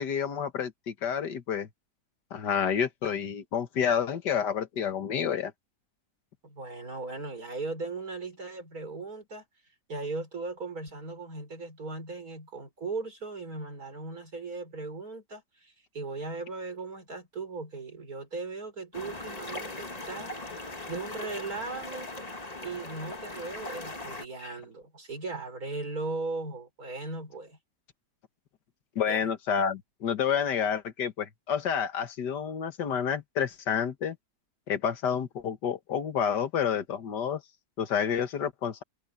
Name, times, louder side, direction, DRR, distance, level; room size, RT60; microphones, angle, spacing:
voice 1, 0.0-1.7 2.3-5.5 24.4-24.5 29.0-34.2 34.7-37.4 37.8-38.8, left 7 dB, 85° left, 2.0 m, -29 dB
voice 2, 6.4-9.4 9.9-20.6 20.9-22.2 22.6-27.6 29.1-29.3, right 3 dB, 60° right, 5.1 m, -38 dB
sound 1, 18.9-24.3, left 2 dB, 25° left, 1.9 m, -39 dB
omnidirectional pair, 1.8 m